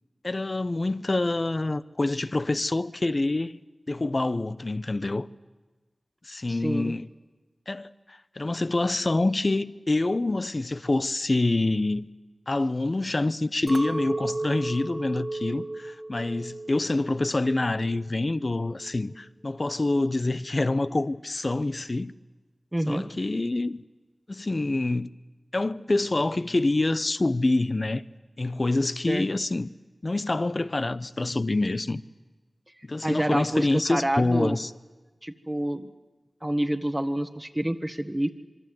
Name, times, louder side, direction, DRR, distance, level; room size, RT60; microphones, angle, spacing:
voice 1, 0.2-3.6 3.9-5.3 6.2-7.1 7.7-12.1 12.5-22.1 22.9-23.8 24.3-25.1 25.5-28.0 28.4-29.7 30.0-32.0 32.8-34.7, left 2 dB, 50° left, 0.8 m, -26 dB
voice 2, 6.5-6.9 22.7-23.0 29.1-29.2 33.0-34.6 35.2-35.9 36.4-38.3, right 1 dB, 20° right, 1.4 m, -28 dB
Chink clink, 13.7-18.1 18.4-19.0, right 2 dB, 45° right, 1.9 m, -35 dB
25.5 x 24.0 x 7.9 m
cardioid pair, 40°, 0 cm